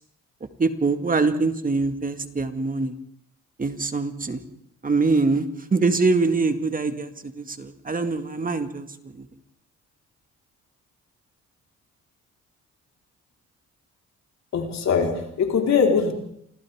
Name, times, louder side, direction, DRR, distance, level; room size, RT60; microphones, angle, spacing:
voice 1, 0.6-2.9 3.6-4.4 4.8-8.9 9.1-9.3, right 3 dB, 30° right, 8 dB, 2.0 m, -24 dB
voice 2, 14.5-16.1, left 5 dB, 65° left, 1 dB, 4.4 m, -21 dB
29.0 x 25.0 x 3.7 m, 0.72 s
cardioid pair, 90°, 30 cm